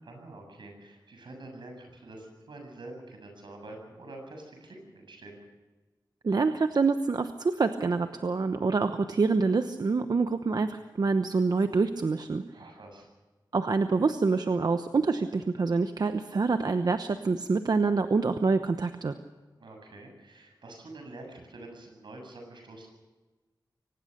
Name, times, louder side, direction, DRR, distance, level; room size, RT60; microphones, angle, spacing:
voice 1, 0.0-5.4 12.5-13.1 19.6-22.9, right 2 dB, 80° right, 3 dB, 7.6 m, -46 dB
voice 2, 6.2-12.4 13.5-19.2, right 4 dB, 60° right, 8 dB, 1.0 m, -26 dB
24.0 x 19.0 x 6.7 m, 1.2 s
wide cardioid pair, 115°, 8 cm